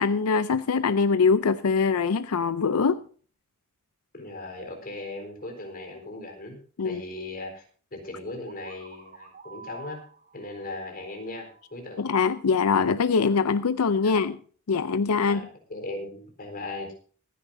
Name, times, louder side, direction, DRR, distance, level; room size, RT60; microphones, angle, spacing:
voice 1, 0.0-3.0 6.8-7.0 12.0-14.4 14.7-15.4, left 5 dB, 85° left, 0.6 m, -23 dB
voice 2, 4.1-7.6 7.9-10.0 10.3-12.0 14.0-14.3 15.2-15.4 15.7-16.9, left 2 dB, 40° left, 4.2 m, -38 dB
sound 1, 8.5-12.2, right 5 dB, 45° right, 2.4 m, -49 dB
25.0 x 10.0 x 2.7 m
head